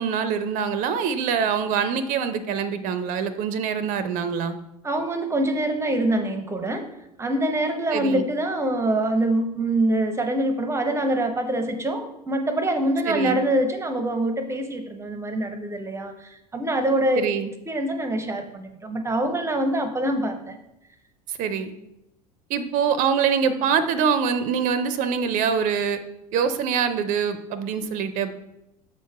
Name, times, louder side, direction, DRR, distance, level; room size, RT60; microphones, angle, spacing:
voice 1, 0.0-4.6 7.9-8.2 13.1-13.4 17.1-17.5 21.3-21.7 22.5-26.0 26.3-28.4, right 7 dB, 40° right, 12 dB, 0.6 m, -24 dB
voice 2, 4.8-6.9 7.2-17.3 17.7-20.6, right 1 dB, 15° right, 7 dB, 0.8 m, -25 dB
6.9 x 4.6 x 4.5 m, 0.86 s
figure-of-eight pair, 75°, 21 cm